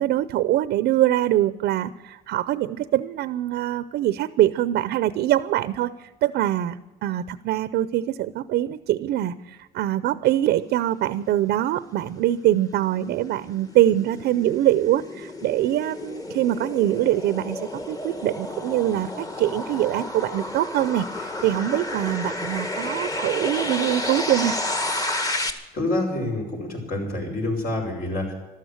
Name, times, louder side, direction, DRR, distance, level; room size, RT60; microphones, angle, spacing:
voice 1, 0.0-5.9 6.2-6.8 7.0-24.5, right 13 dB, 75° right, 15 dB, 0.7 m, -23 dB
sound 1, 12.3-25.5, left 1 dB, 20° left, 1.8 m, -31 dB
voice 2, 25.7-28.3, left 2 dB, 60° left, 2 dB, 6.7 m, -27 dB
14.0 x 13.0 x 8.0 m, 1.1 s
cardioid pair, 110°, 17 cm